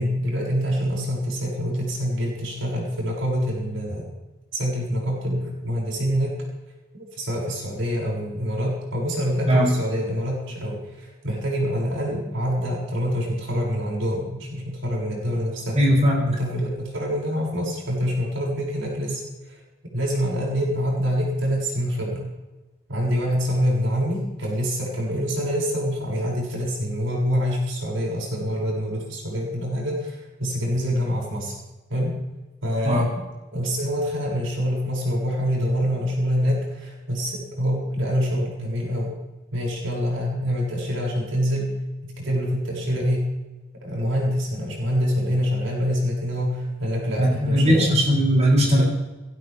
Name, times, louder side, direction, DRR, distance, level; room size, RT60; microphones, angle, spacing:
voice 1, 0.0-4.1 4.5-6.4 6.9-15.8 16.3-19.6 19.9-22.3 22.9-31.6 31.9-32.1 32.6-33.2 33.5-39.2 39.5-41.7 42.0-43.3 43.8-47.9 48.6-48.8, equal, 75° right, -3 dB, 6.9 m, -26 dB
voice 2, 15.7-16.3 32.8-33.1 47.2-48.8, equal, 35° right, -4 dB, 7.1 m, -18 dB
22.0 x 18.0 x 3.6 m, 1.1 s
head